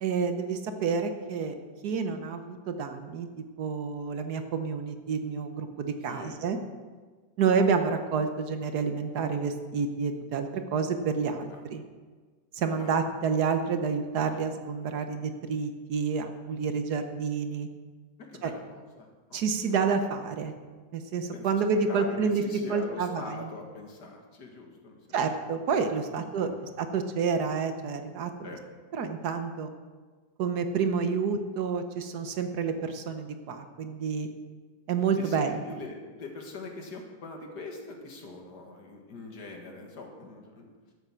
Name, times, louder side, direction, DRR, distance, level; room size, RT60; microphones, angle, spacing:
voice 1, 0.0-1.5 1.8-3.3 3.6-6.6 7.4-11.8 12.5-17.7 18.4-18.5 19.3-20.5 20.9-22.4 22.7-23.5 25.1-26.5 26.8-28.5 28.9-29.7 30.4-34.3 34.9-35.6, right 5 dB, 70° right, 7 dB, 1.4 m, -29 dB
voice 2, 6.1-6.4 11.3-11.6 12.7-13.0 18.2-19.8 21.3-21.6 21.9-25.2 26.3-26.7 28.4-28.6 35.2-40.7, left 3 dB, 70° left, 2 dB, 2.3 m, -43 dB
12.5 x 8.2 x 6.2 m, 1.4 s
omnidirectional pair, 1.8 m